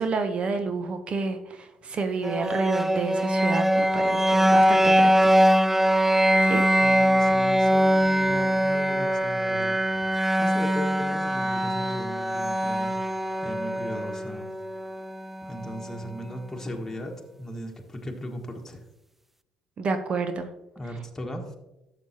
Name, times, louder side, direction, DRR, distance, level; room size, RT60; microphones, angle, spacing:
voice 1, 0.0-5.3 6.4-6.6 19.8-20.5, right 4 dB, 45° right, 8 dB, 0.9 m, -29 dB
sound 1, 2.2-16.2, equal, 10° right, 0.4 m, -23 dB
voice 2, 6.8-10.1 10.4-12.9 13.4-14.5 15.5-17.1 17.4-18.8 20.7-21.6, left 1 dB, 15° left, 1 dB, 1.5 m, -37 dB
11.5 x 6.9 x 2.9 m, 0.96 s
figure-of-eight pair, 50°, 3 cm